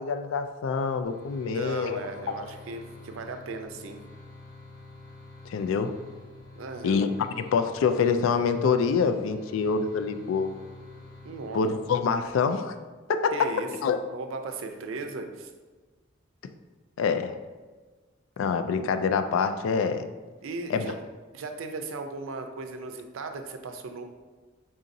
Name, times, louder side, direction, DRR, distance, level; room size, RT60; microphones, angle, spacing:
voice 1, 0.0-2.4 5.5-5.9 6.8-7.1 7.4-10.5 11.5-12.7 13.1-13.5 13.8-14.0 17.0-17.4 18.4-20.1 20.7-20.9, left 5 dB, 80° left, 8 dB, 0.3 m, -26 dB
sound 1, 1.0-12.4, left 2 dB, 20° left, 0.9 m, -48 dB
voice 2, 1.4-4.0 6.6-7.0 11.2-11.6 13.3-13.7 14.1-15.5 20.4-20.9 21.3-24.0, right 3 dB, 80° right, 6 dB, 0.4 m, -37 dB
4.0 x 3.7 x 2.6 m, 1.3 s
head